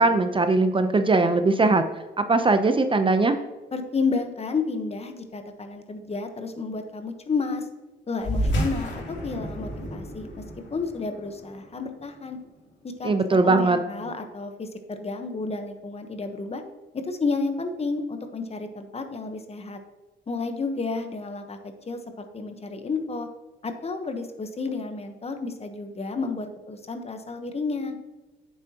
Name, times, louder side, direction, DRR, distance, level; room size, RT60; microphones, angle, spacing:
voice 1, 0.0-1.8 2.2-3.4 13.0-13.8, right 3 dB, 25° right, 8 dB, 0.7 m, -20 dB
voice 2, 3.7-7.7 8.1-10.3 10.7-12.4 12.8-13.1 13.4-16.6 16.9-19.8 20.3-23.3 23.6-27.9, left 4 dB, 30° left, 7 dB, 1.1 m, -31 dB
sound 1, 8.2-13.1, equal, 65° left, 2.6 m, -31 dB
8.9 x 7.3 x 2.9 m, 1.1 s
cardioid pair, 90°, 20 cm